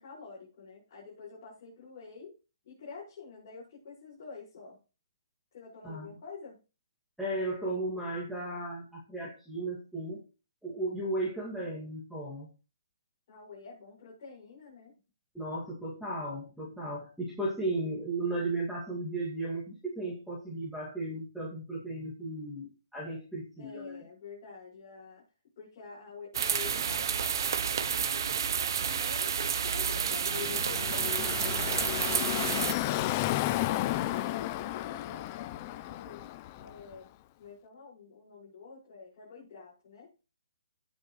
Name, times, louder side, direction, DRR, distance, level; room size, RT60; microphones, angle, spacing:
voice 1, 0.0-2.3 2.6-4.8 5.5-6.6 13.3-14.9 23.6-25.2 25.6-28.4 28.9-36.2 36.6-37.1 37.4-40.1, left 5 dB, 40° left, -7 dB, 5.8 m, -47 dB
voice 2, 7.2-10.2 10.6-12.5 15.3-24.0, right 2 dB, ahead, -7 dB, 2.3 m, -35 dB
sound 1, 26.3-32.7, right 7 dB, 50° right, 1.1 m, -30 dB
Car passing by / Traffic noise roadway noise, 30.0-36.9, left 15 dB, 25° left, 0.4 m, -33 dB
17.0 x 6.2 x 3.2 m, 0.32 s
hypercardioid pair, 165°, 3 cm